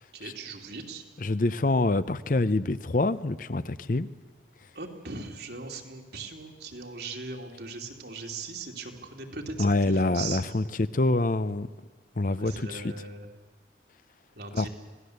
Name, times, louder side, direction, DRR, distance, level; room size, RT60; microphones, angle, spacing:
voice 1, 0.1-1.0 4.7-10.6 12.4-13.3 14.3-14.7, right 3 dB, 65° right, 2 dB, 3.0 m, -39 dB
voice 2, 1.2-4.1 9.6-11.7 12.2-12.8 14.5-14.7, left 2 dB, 45° left, 15 dB, 0.6 m, -26 dB
26.5 x 17.5 x 8.1 m, 1.4 s
head